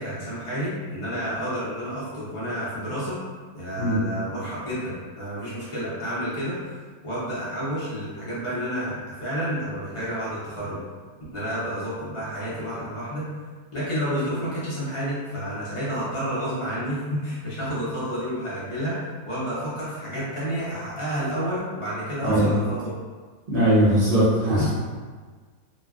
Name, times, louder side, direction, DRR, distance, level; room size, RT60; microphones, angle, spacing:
voice 1, 0.0-3.2 3.5-6.6 7.0-10.8 11.3-13.3 13.7-22.9, equal, 45° left, -10 dB, 0.4 m, -30 dB
voice 2, 22.2-22.5 23.5-24.8, right 1 dB, 45° right, -10 dB, 0.8 m, -20 dB
3.1 x 2.2 x 2.3 m, 1.5 s
omnidirectional pair, 1.7 m